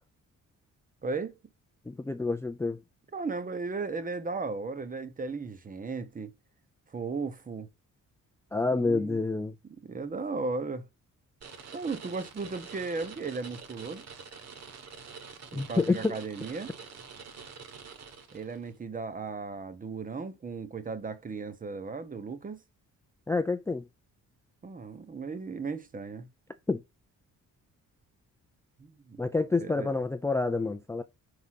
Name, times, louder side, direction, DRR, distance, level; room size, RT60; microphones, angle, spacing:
voice 1, 1.0-1.4 3.1-6.3 6.9-7.7 8.7-9.2 9.8-10.9 11.7-14.1 15.5-16.7 18.3-22.6 24.6-26.3 28.8-29.2 29.6-29.9, right 4 dB, 25° right, 0.8 m, -36 dB
voice 2, 1.9-2.8 8.5-9.5 15.5-16.2 23.3-23.9 26.7-26.8 29.2-31.0, left 3 dB, 10° left, 0.4 m, -28 dB
sound 1, 11.4-18.7, right 5 dB, 55° right, 1.4 m, -46 dB
5.3 x 4.8 x 5.6 m
cardioid pair, 150°, 32 cm